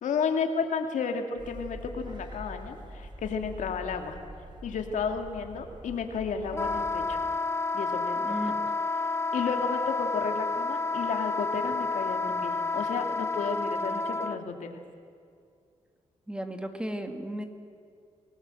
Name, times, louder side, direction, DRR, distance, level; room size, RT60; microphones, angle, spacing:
voice 1, 0.0-4.2 4.6-7.2 7.7-8.2 8.5-8.6 9.3-14.8, left 5 dB, 85° left, 5 dB, 2.4 m, -32 dB
sound 1, 1.4-7.3, right 1 dB, 40° right, 3.6 m, -44 dB
Wind instrument woodwind instrument, 6.5-14.4, left 3 dB, 20° left, 0.8 m, -30 dB
voice 2, 8.2-8.8 16.3-17.4, equal, 5° right, 6 dB, 2.1 m, -35 dB
27.0 x 19.0 x 7.8 m, 2.3 s
cardioid pair, 90°, 13 cm